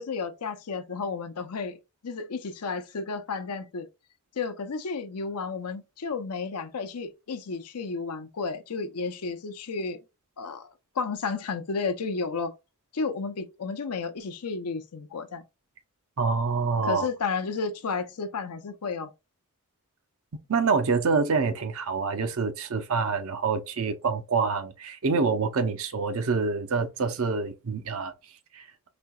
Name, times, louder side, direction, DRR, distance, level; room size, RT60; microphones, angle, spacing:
voice 1, 0.0-1.8 2.0-3.9 4.4-10.0 10.4-10.7 10.9-12.5 12.9-15.4 16.8-19.1, left 4 dB, 85° left, 0.6 m, -32 dB
voice 2, 16.2-17.1 20.5-28.1 28.5-28.7, right 4 dB, 65° right, 0.6 m, -26 dB
4.2 x 2.7 x 2.3 m
head